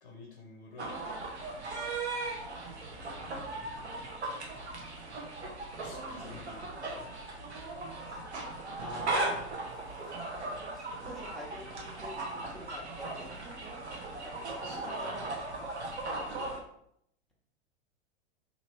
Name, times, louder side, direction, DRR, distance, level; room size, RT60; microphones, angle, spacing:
voice 1, 0.0-1.0 2.9-3.7 5.8-7.0 14.6-15.2 16.0-16.5, left 2 dB, 65° left, 0 dB, 0.8 m, -51 dB
sound 1, 0.8-16.6, right 2 dB, 80° right, 0.7 m, -38 dB
voice 2, 8.8-10.3 10.7-13.4 14.2-14.4 14.7-15.4 16.2-16.4, left 1 dB, ahead, -3 dB, 0.4 m, -48 dB
2.9 x 2.5 x 3.0 m, 0.74 s
figure-of-eight pair, 95°, 33 cm